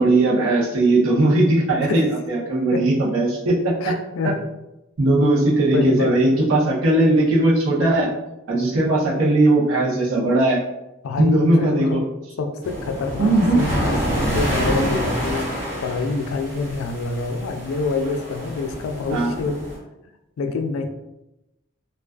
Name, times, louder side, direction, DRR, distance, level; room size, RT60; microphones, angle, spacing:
voice 1, 0.0-4.0 5.0-8.1 8.5-10.6 11.2-12.0 13.2-13.6 19.1-19.3, right 2 dB, 85° right, -5 dB, 0.7 m, -18 dB
voice 2, 1.6-2.1 2.7-2.9 3.8-4.3 5.7-6.2 11.0-12.0 12.4-15.5 15.8-19.6 20.4-20.9, left 4 dB, 85° left, 6 dB, 0.3 m, -26 dB
sound 1, 12.6-19.8, equal, 60° right, 1.2 m, -27 dB
2.3 x 2.3 x 2.3 m, 0.94 s
head